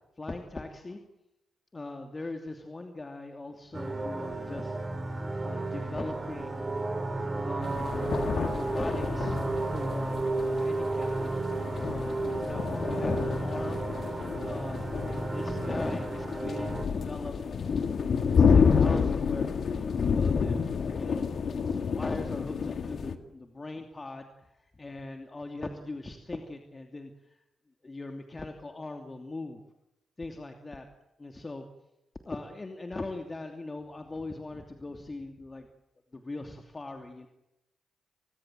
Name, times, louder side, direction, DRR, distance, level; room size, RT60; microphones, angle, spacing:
voice 1, 0.2-1.0 1.7-4.8 5.4-6.6 7.4-8.1 8.4-11.5 11.8-14.1 14.5-14.9 15.3-17.4 18.3-19.6 20.0-27.4 27.8-29.6 30.2-30.9 31.2-31.6 32.3-35.7 36.1-37.3, left 2 dB, 30° left, 5 dB, 2.8 m, -40 dB
sound 1, 3.7-16.8, right 2 dB, 30° right, 5.6 m, -32 dB
sound 2, 7.6-23.2, left 6 dB, 60° left, 2.0 m, -29 dB
30.0 x 20.0 x 7.7 m, 0.92 s
hypercardioid pair, 40°, 0 cm